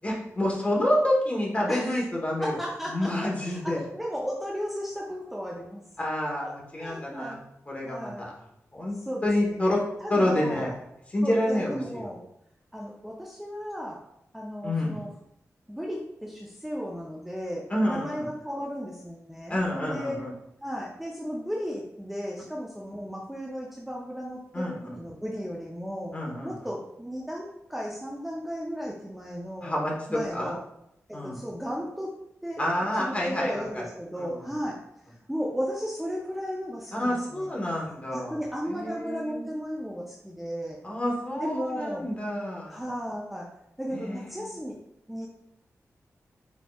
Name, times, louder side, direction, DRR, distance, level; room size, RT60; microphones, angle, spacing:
voice 1, 0.0-2.5 2.9-3.8 6.0-6.5 6.7-7.4 7.7-8.3 8.7-9.0 9.2-9.8 10.1-10.7 11.1-12.0 14.6-15.0 17.7-18.2 19.5-20.3 24.5-24.7 26.1-26.5 29.6-29.9 30.3-30.5 31.1-31.4 32.6-33.8 34.2-34.5 36.9-38.4 38.7-39.4 40.8-42.8 43.9-44.5, left 1 dB, 25° left, -2 dB, 1.0 m, -28 dB
voice 2, 1.7-2.0 2.4-5.8 6.4-7.4 7.8-8.3 9.1-9.6 10.0-10.7 11.2-12.2 12.7-14.0 14.3-15.1 15.7-20.2 20.6-26.1 26.4-29.7 30.1-30.6 31.1-32.1 32.4-32.6 32.9-34.8 35.1-37.5 38.1-40.8 41.4-42.1 42.7-43.5 43.8-44.8 45.1-45.3, equal, 5° right, -3 dB, 0.5 m, -35 dB
4.5 x 4.2 x 2.3 m, 0.81 s
wide cardioid pair, 145°, 5 cm